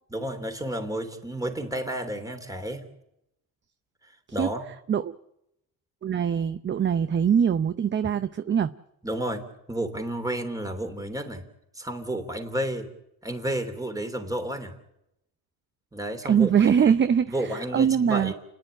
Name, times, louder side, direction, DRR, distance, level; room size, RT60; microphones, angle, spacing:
voice 1, 0.1-2.9 4.3-4.6 9.0-11.4 11.7-12.9 13.2-14.7 15.9-16.9 17.3-18.3, right 1 dB, 10° right, 3.1 m, -31 dB
voice 2, 6.0-8.7 16.3-18.3, right 8 dB, 30° right, 0.7 m, -22 dB
30.0 x 10.5 x 8.8 m
cardioid pair, 105°, 38 cm